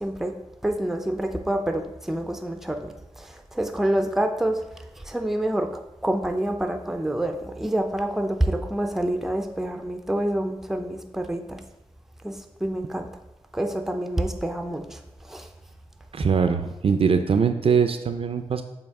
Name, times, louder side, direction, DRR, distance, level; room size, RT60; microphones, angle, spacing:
voice 1, 0.0-0.3 0.6-4.6 5.0-5.7 6.0-11.6 12.2-12.4 12.6-13.1 13.5-15.0 15.3-15.5, right 1 dB, 5° right, 0.6 m, -27 dB
voice 2, 16.1-18.6, right 6 dB, 60° right, 0.5 m, -22 dB
7.1 x 2.8 x 4.7 m
wide cardioid pair, 85°, 11 cm